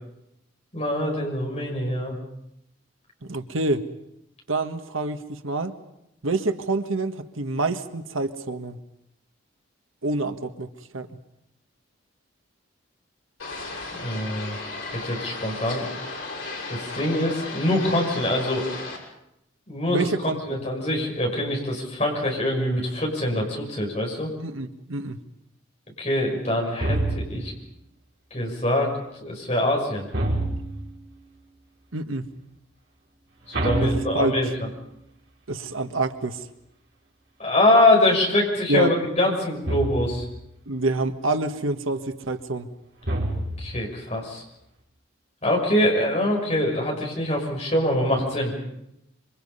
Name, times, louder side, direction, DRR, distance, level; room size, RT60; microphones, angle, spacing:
voice 1, 0.7-2.2 13.9-14.6 15.0-15.8 16.7-18.6 19.7-24.3 26.0-27.5 28.3-28.9 29.2-30.0 33.5-34.5 37.4-40.2 43.6-44.4 45.4-48.5, left 1 dB, 30° left, 0 dB, 6.2 m, -24 dB
voice 2, 3.2-3.8 4.5-5.8 6.2-8.8 10.0-11.1 19.9-20.7 24.4-25.2 31.9-32.3 33.8-34.3 35.5-36.4 38.7-38.9 40.7-42.7, right 2 dB, 85° right, 8 dB, 1.5 m, -27 dB
sound 1, 13.4-19.0, left 3 dB, 75° left, 6.4 m, -35 dB
sound 2, 26.8-27.5 30.1-30.9 33.5-34.7 39.6-40.3 43.0-43.8, right 1 dB, 55° right, 5.2 m, -27 dB
27.0 x 25.0 x 5.6 m, 0.83 s
head